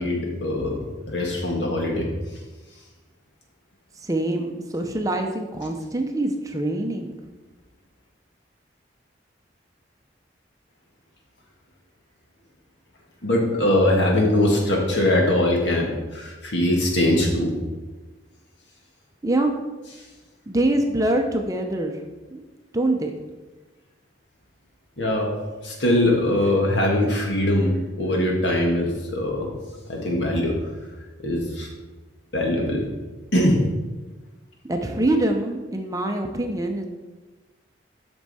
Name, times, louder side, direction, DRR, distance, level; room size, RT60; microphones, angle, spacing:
voice 1, 0.0-2.1 13.2-17.5 25.0-25.3 25.6-29.5 29.9-30.5 31.2-31.7 32.3-32.9 33.3-33.6, left 1 dB, 70° left, 0 dB, 1.7 m, -22 dB
voice 2, 4.0-7.1 19.2-19.5 20.5-21.9 22.3-22.4 22.7-23.1 34.6-36.8, right 1 dB, 20° right, 4 dB, 0.6 m, -24 dB
8.1 x 6.1 x 4.2 m, 1.2 s
head